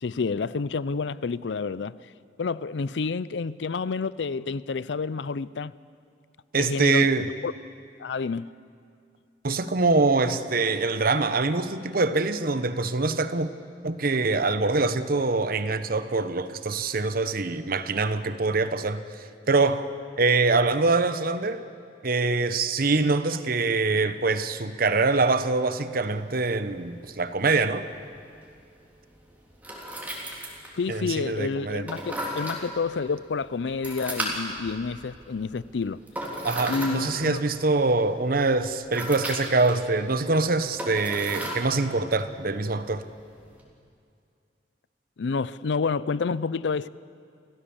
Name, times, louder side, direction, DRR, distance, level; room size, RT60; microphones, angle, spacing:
voice 1, 0.0-2.0 2.4-5.7 6.6-7.5 8.0-8.5 30.7-36.0 36.7-37.4 45.2-46.9, left 4 dB, 85° left, 0.5 m, -29 dB
voice 2, 6.5-7.3 9.4-13.5 13.8-19.0 19.5-19.8 20.2-21.6 22.0-27.8 30.9-31.9 36.4-43.0, right 3 dB, 55° right, 1.0 m, -24 dB
sound 1, 26.1-43.6, equal, 10° right, 3.4 m, -38 dB
29.0 x 15.0 x 7.2 m
head